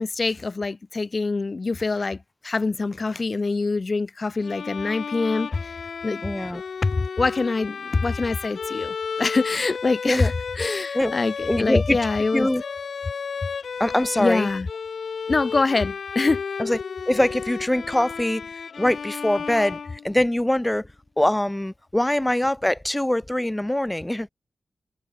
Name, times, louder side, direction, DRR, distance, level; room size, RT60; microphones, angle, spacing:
voice 1, 0.0-2.2 2.4-5.8 6.0-6.2 6.8-12.5 14.2-14.7 15.3-16.4, left 3 dB, 50° left, 0.8 m, -24 dB
Bowed string instrument, 4.4-20.4, left 6 dB, 80° left, 0.7 m, -33 dB
voice 2, 6.2-6.6 10.0-10.3 10.9-11.1 11.5-12.0 12.3-12.6 13.8-14.5 16.6-16.8 17.1-18.5 18.8-20.9 21.2-24.3, left 1 dB, 15° left, 1.1 m, -23 dB
cardioid pair, 50°, 0 cm